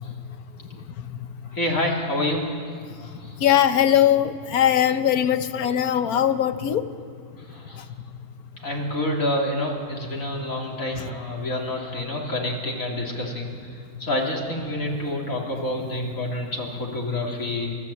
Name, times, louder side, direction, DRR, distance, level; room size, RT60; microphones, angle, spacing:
voice 1, 1.5-2.5 3.0-3.1 7.5-7.8 8.6-13.5 14.0-17.8, left 1 dB, 65° left, -2 dB, 3.7 m, -27 dB
voice 2, 3.4-6.9 7.8-7.9 11.0-11.1, left 10 dB, 85° left, 11 dB, 1.4 m, -20 dB
28.0 x 14.0 x 8.6 m, 2.2 s
omnidirectional pair, 1.5 m